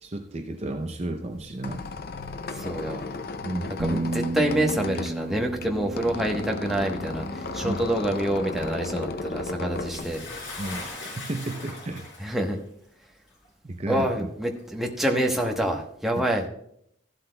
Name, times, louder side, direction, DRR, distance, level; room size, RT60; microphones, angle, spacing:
voice 1, 0.0-1.8 3.4-3.8 7.6-7.8 10.6-10.8 11.1-12.1 13.6-14.1 16.2-16.3, right 1 dB, 35° right, 5 dB, 0.6 m, -32 dB
Squeak, 1.3-10.9, left 3 dB, 50° left, 0.5 m, -35 dB
voice 2, 2.4-3.0 3.8-10.2 12.2-12.6 13.9-16.5, right 1 dB, ahead, 0 dB, 1.0 m, -27 dB
Bass guitar, 3.8-10.0, right 3 dB, 85° right, 1.1 m, -35 dB
Bathtub (filling or washing) / Splash splatter, 9.9-12.5 13.4-13.5 14.5-14.6, left 2 dB, 75° left, 4.6 m, -39 dB
14.0 x 11.5 x 2.2 m, 0.73 s
head